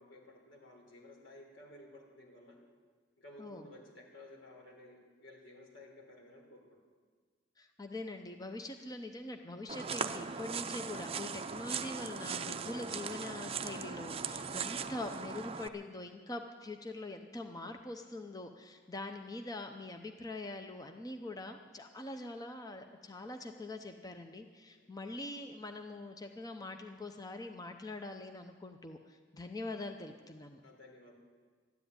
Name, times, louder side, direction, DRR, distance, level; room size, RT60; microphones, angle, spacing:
voice 1, 0.0-2.6 3.2-6.8 24.8-25.2 30.6-31.1, left 1 dB, 85° left, 0 dB, 3.9 m, -55 dB
voice 2, 7.6-30.6, left 2 dB, 20° left, 5 dB, 0.7 m, -43 dB
sound 1, 9.7-15.7, right 6 dB, 30° right, 0.5 m, -39 dB
13.0 x 10.5 x 9.5 m, 1.5 s
head